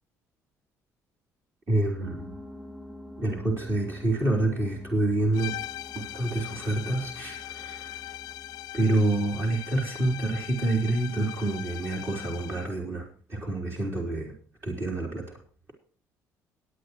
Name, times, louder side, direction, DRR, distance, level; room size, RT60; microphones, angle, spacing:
voice 1, 1.7-2.4 3.2-5.5 5.9-8.1 8.7-14.3 14.6-15.4, right 2 dB, 35° right, 0 dB, 3.7 m, -27 dB
sound 1, 2.0-10.1, left 1 dB, 15° right, 3.9 m, -47 dB
sound 2, 5.3-12.8, left 16 dB, 75° left, 0.5 m, -40 dB
18.5 x 9.2 x 3.1 m, 0.41 s
cardioid pair, 85°, 7 cm